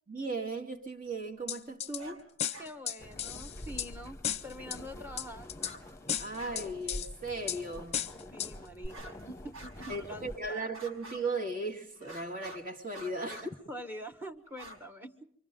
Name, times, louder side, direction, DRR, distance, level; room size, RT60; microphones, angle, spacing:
voice 1, 0.1-2.3 6.2-8.0 9.9-13.5, right 2 dB, 40° right, 2.4 m, -37 dB
sound 1, 1.5-2.0 2.4-3.9 4.2-4.8 5.2-5.7 6.1-7.1 7.5-7.6 7.9-8.5 8.8-8.9, left 9 dB, 30° left, 0.9 m, -34 dB
sound 2, 1.9-2.2 2.5-2.7 4.3-4.4 5.5-5.8 6.1-6.6 6.9-7.0 7.7-7.8 8.8-9.2 9.5-10.2 10.7-11.4 12.0-12.6 12.9-13.5 14.5-14.8, right 1 dB, 80° right, 5.2 m, -48 dB
voice 2, 2.6-5.5 8.3-10.7 13.3-13.4 13.7-15.3, equal, 10° right, 1.4 m, -45 dB
sound 3, 3.0-10.4, left 1 dB, 15° left, 1.2 m, -47 dB
29.0 x 24.5 x 3.8 m
head